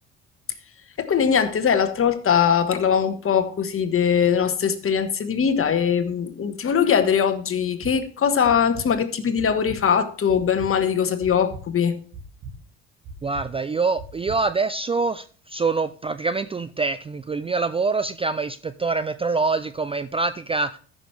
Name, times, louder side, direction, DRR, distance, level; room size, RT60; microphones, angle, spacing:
voice 1, 1.0-12.0, left 7 dB, 40° left, 9 dB, 1.4 m, -21 dB
sound 1, 7.7-7.9 8.4-8.9 9.4-9.8 10.3-10.7 11.2-11.6 12.1-12.5 13.0-13.5 14.0-14.4, right 4 dB, 50° right, 1.9 m, -38 dB
voice 2, 13.2-20.8, right 4 dB, 15° right, 13 dB, 0.4 m, -25 dB
14.0 x 6.1 x 3.3 m, 0.41 s
hypercardioid pair, 65°, 33 cm